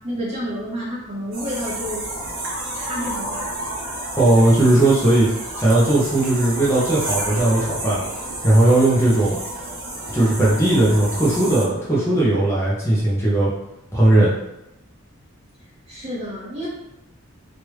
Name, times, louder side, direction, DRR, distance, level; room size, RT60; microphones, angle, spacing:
voice 1, 0.0-2.0 2.7-3.5 15.9-16.7, equal, 30° right, -7 dB, 1.1 m, -30 dB
sound 1, 1.3-11.7, right 1 dB, 65° right, 0.9 m, -30 dB
voice 2, 4.2-5.3 5.6-9.4 10.1-13.5 13.9-14.3, right 1 dB, 10° left, -7 dB, 0.7 m, -17 dB
3.2 x 2.5 x 3.1 m, 0.89 s
head